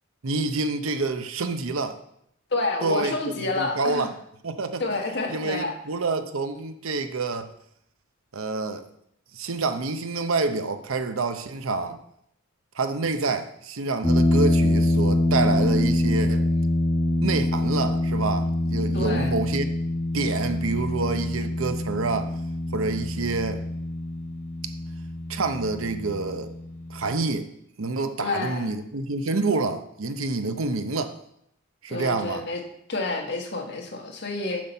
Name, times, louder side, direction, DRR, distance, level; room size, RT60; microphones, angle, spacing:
voice 1, 0.2-2.0 2.8-4.1 4.4-4.8 5.3-7.5 8.3-8.8 9.3-12.0 12.7-16.4 17.2-19.7 20.1-22.3 22.7-23.6 24.6-24.7 25.3-26.5 26.9-27.5 27.8-31.2 31.8-32.4, right 3 dB, 75° right, 9 dB, 0.7 m, -27 dB
voice 2, 2.5-4.1 4.8-5.8 18.9-19.3 28.2-28.7 31.9-32.6 32.9-34.6, left 3 dB, 55° left, 2 dB, 1.4 m, -29 dB
sound 1, 14.0-27.1, left 1 dB, 10° left, 0.7 m, -25 dB
7.5 x 5.9 x 5.5 m, 0.74 s
head